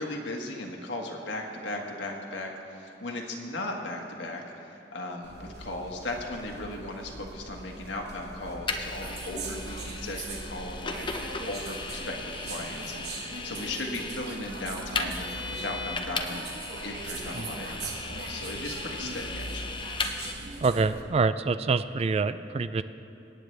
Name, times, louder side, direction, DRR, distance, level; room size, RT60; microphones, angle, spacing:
voice 1, 0.0-19.8, left 1 dB, 85° left, 1 dB, 1.6 m, -37 dB
sound 1, 5.2-21.0, right 3 dB, 65° right, 1.1 m, -40 dB
Vehicle, 8.7-20.3, left 4 dB, 25° left, 0.7 m, -37 dB
voice 2, 20.6-22.8, right 4 dB, 35° right, 13 dB, 0.3 m, -26 dB
25.0 x 9.4 x 3.3 m, 2.8 s
head